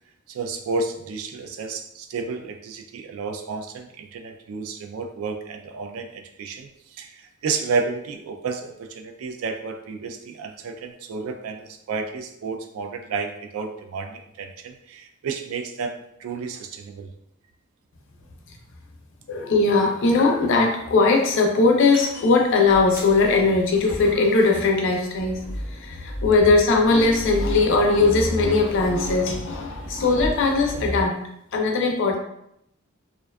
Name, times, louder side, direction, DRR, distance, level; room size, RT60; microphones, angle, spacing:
voice 1, 0.3-17.1, right 4 dB, 75° right, 6 dB, 0.3 m, -31 dB
voice 2, 19.3-25.4 25.7-31.2 31.5-32.2, left 3 dB, 60° left, 2 dB, 0.4 m, -19 dB
sound 1, 21.9-31.0, equal, 10° right, 0.7 m, -34 dB
2.5 x 2.2 x 2.2 m, 0.77 s
head